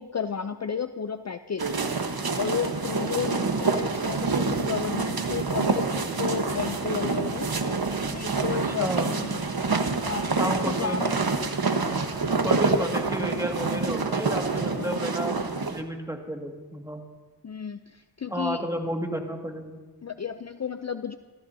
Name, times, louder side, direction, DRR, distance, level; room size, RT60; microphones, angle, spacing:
voice 1, 0.0-1.8 2.4-7.5 8.1-9.6 10.0-11.5 14.7-15.1 17.4-18.6 20.0-21.2, left 7 dB, 40° left, 9 dB, 0.6 m, -33 dB
sound 1, 1.6-15.8, right 4 dB, 55° right, 1.3 m, -27 dB
voice 2, 8.7-9.1 10.4-11.1 12.4-15.4 15.7-17.1 18.3-19.8, equal, 5° right, 2 dB, 2.0 m, -31 dB
27.0 x 14.5 x 2.8 m, 1.3 s
cardioid pair, 45°, 43 cm